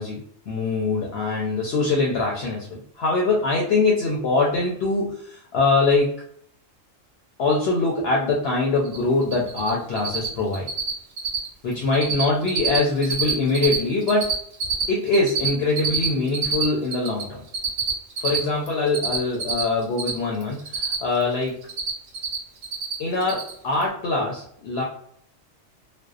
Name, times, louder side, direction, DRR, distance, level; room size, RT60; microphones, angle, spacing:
voice 1, 0.0-6.1 7.4-10.7 11.6-14.3 14.9-17.4 18.2-21.6 23.0-24.8, left 3 dB, 65° left, -2 dB, 0.7 m, -23 dB
Cricket, 8.8-9.0 9.2-9.7 10.0-10.3 10.5-10.9 11.2-11.5 11.7-12.2 12.5-13.8 14.0-17.2 17.5-20.1 20.4-21.2 21.5-22.4 22.6-22.9 23.2-23.5, right 6 dB, 80° right, 1.0 m, -25 dB
2.5 x 2.1 x 2.3 m, 0.66 s
omnidirectional pair, 1.3 m